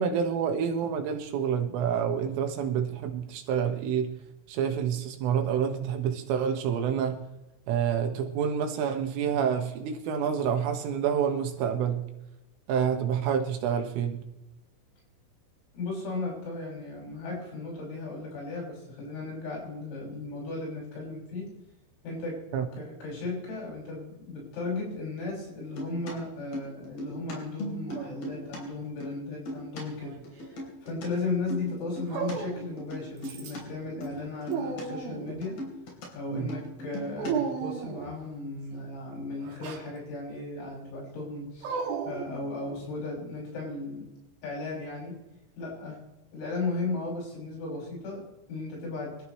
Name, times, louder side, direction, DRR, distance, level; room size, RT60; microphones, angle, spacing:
voice 1, 0.0-4.1 4.5-7.2 7.7-12.0 12.7-14.3 22.5-22.7 36.3-36.5, right 7 dB, 80° right, 5 dB, 3.9 m, -28 dB
voice 2, 15.7-21.5 22.0-22.4 22.8-30.6 30.8-35.6 36.1-44.1 44.4-45.2 45.6-46.0 46.3-49.2, left 3 dB, 80° left, -3 dB, 9.2 m, -36 dB
sound 1, 25.6-28.6 28.9-29.8 30.2-31.1 31.3-32.4 32.8-33.6 34.0-34.2 34.5-34.8 35.1-36.1 36.3-37.6, equal, 50° left, 5.2 m, -39 dB
Dog, 27.9-28.7 29.8-30.7 32.1-32.8 33.2-33.7 34.1-35.5 37.2-38.2 39.4-39.9 41.6-42.9, right 6 dB, 60° right, 2.8 m, -35 dB
26.0 x 14.0 x 3.2 m, 1.0 s
omnidirectional pair, 5.9 m